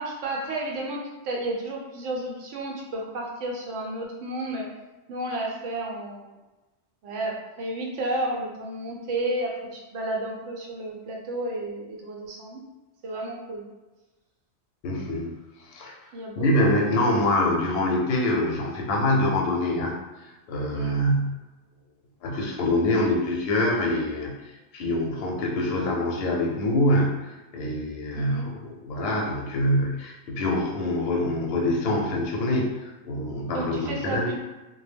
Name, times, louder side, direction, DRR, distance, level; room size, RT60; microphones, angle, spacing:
voice 1, 0.0-4.7 5.1-6.4 7.0-12.6 13.0-13.7 16.1-16.5 16.8-17.1 20.7-21.0 28.1-28.5 33.5-34.4, right 1 dB, 90° right, -1 dB, 0.9 m, -32 dB
voice 2, 14.8-15.3 15.7-16.0 16.4-20.0 20.2-21.3 22.2-34.3, left 1 dB, 65° left, -1 dB, 0.7 m, -25 dB
2.2 x 2.0 x 3.3 m, 1.1 s
omnidirectional pair, 1.2 m